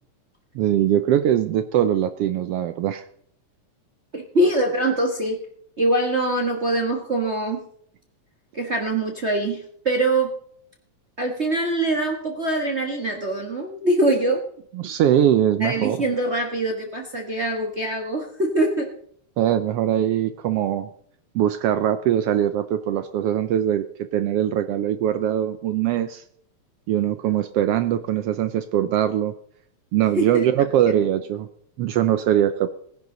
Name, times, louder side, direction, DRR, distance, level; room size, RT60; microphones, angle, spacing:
voice 1, 0.5-3.0 14.7-16.0 19.4-20.9 21.3-26.2 26.9-29.3 29.9-31.5 31.8-32.7, right 11 dB, 80° right, 11 dB, 1.3 m, -22 dB
voice 2, 4.1-5.4 5.8-7.6 8.5-10.3 11.2-14.4 15.6-18.9 30.1-30.5, right 1 dB, 40° right, 1 dB, 1.0 m, -23 dB
18.5 x 10.5 x 3.9 m, 0.64 s
omnidirectional pair, 3.4 m